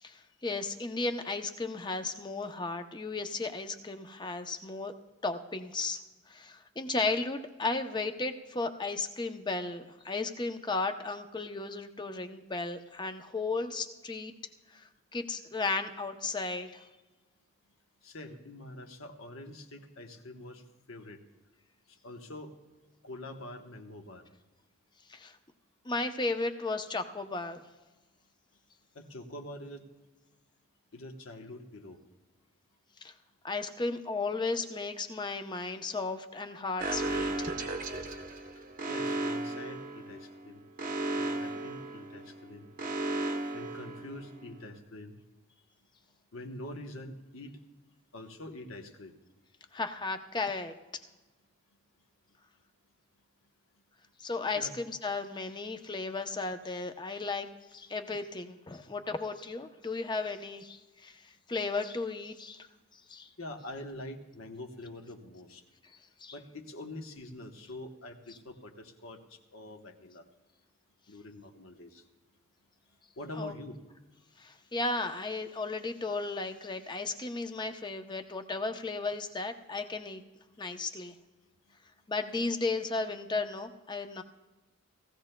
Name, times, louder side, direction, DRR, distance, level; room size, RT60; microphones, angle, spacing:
voice 1, 0.0-4.9 5.2-6.0 6.3-14.3 14.7-16.9 25.1-25.4 25.8-27.6 33.0-33.1 33.4-37.5 49.7-50.7 54.2-62.7 62.9-63.3 66.2-66.4 68.3-68.4 73.3-73.5 74.4-80.2 80.6-81.1 82.1-84.2, left 3 dB, 20° left, 7 dB, 0.6 m, -35 dB
voice 2, 18.0-20.6 20.9-21.2 21.9-22.6 23.0-24.3 28.9-29.9 30.9-32.0 38.9-40.6 41.2-42.7 43.5-45.2 46.3-47.6 48.1-49.1 54.5-54.7 63.4-65.6 66.3-70.3 71.1-72.0 73.2-73.8, left 1 dB, 75° left, 4 dB, 1.1 m, -45 dB
Alarm, 36.8-44.6, right 2 dB, 40° right, 0.8 m, -35 dB
18.5 x 15.0 x 2.2 m, 1.2 s
head